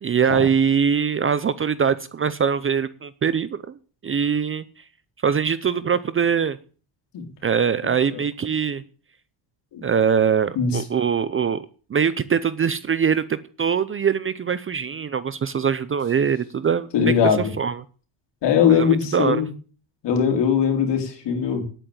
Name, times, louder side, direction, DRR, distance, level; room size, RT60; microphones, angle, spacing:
voice 1, 0.0-3.8 4.0-4.6 5.2-6.6 7.4-8.8 9.8-16.9 17.6-17.8 18.7-19.4, right 7 dB, 25° right, 15 dB, 0.6 m, -22 dB
voice 2, 16.9-17.5 18.4-19.5 20.0-21.6, left 7 dB, 55° left, 5 dB, 3.9 m, -20 dB
10.5 x 9.0 x 8.7 m, 0.40 s
cardioid pair, 130°, 49 cm